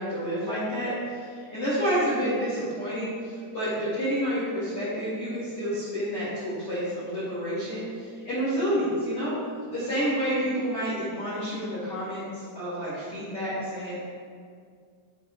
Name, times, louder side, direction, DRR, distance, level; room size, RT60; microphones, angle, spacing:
voice 1, 0.0-9.4 9.7-14.0, equal, 55° left, -11 dB, 1.6 m, -29 dB
7.8 x 5.2 x 3.9 m, 2.1 s
omnidirectional pair, 5.9 m